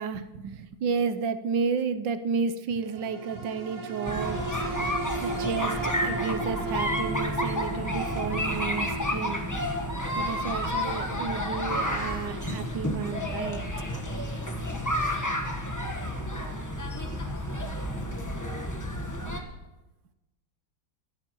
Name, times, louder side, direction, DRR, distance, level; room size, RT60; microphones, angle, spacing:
voice 1, 0.0-4.4 5.2-9.5 10.2-13.7, right 5 dB, 75° right, 11 dB, 1.4 m, -31 dB
sound 1, 2.9-17.6 18.0-18.1, right 3 dB, 45° right, 1.7 m, -38 dB
sound 2, 4.0-19.4, left 1 dB, 15° left, 0.9 m, -31 dB
21.0 x 14.0 x 3.0 m, 1.1 s
omnidirectional pair, 2.1 m